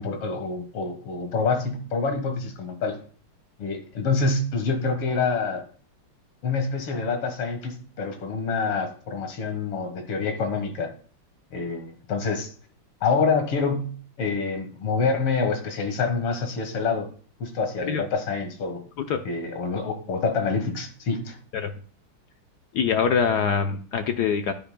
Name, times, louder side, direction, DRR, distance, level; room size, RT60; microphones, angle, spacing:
voice 1, 0.0-3.0 3.6-5.6 6.4-10.9 11.5-12.5 13.0-13.9 14.2-17.1 17.4-18.8 19.3-21.4, left 4 dB, 90° left, 2.5 m, -26 dB
voice 2, 22.7-24.5, left 6 dB, 75° left, 0.9 m, -24 dB
11.5 x 9.0 x 2.2 m
omnidirectional pair, 2.4 m